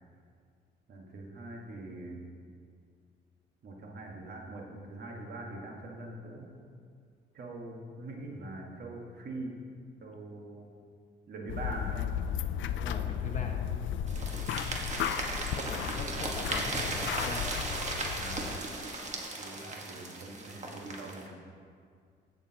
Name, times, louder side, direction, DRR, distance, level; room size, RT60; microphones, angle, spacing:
voice 1, 0.9-2.3 3.6-6.5 7.3-9.6 10.0-10.7 11.3-12.1 15.7-16.4 18.1-18.7 19.4-21.3, right 2 dB, 55° right, 0 dB, 1.6 m, -43 dB
sound 1, 11.5-18.6, left 9 dB, 70° left, 0.4 m, -34 dB
voice 2, 12.8-13.6 15.5-17.5, left 3 dB, 40° left, 1 dB, 1.5 m, -41 dB
sound 2, 14.1-21.3, right 2 dB, 35° right, 1.5 m, -36 dB
16.5 x 6.6 x 2.9 m, 2.2 s
cardioid pair, 90°, 20 cm